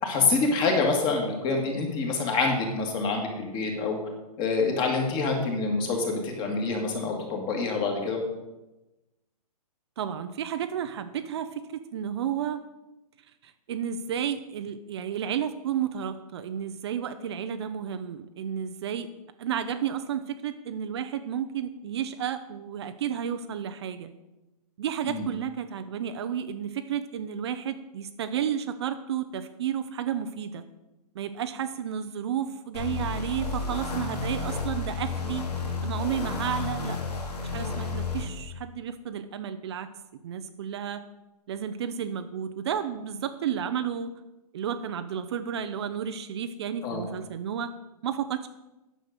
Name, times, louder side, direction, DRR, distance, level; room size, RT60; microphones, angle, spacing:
voice 1, 0.0-4.0 4.4-8.2 25.0-25.3 46.8-47.0, left 4 dB, 20° left, 2 dB, 2.0 m, -26 dB
voice 2, 10.0-12.6 13.4-19.1 19.4-24.1 24.8-30.6 31.1-35.5 35.8-37.0 37.5-39.9 40.2-41.0 41.5-44.1 44.5-47.7 48.0-48.5, right 8 dB, 45° right, 9 dB, 0.6 m, -32 dB
sound 1, 32.7-38.3, left 4 dB, 80° left, 2.6 m, -31 dB
9.8 x 6.6 x 6.5 m, 1.0 s
hypercardioid pair, 155°, 20 cm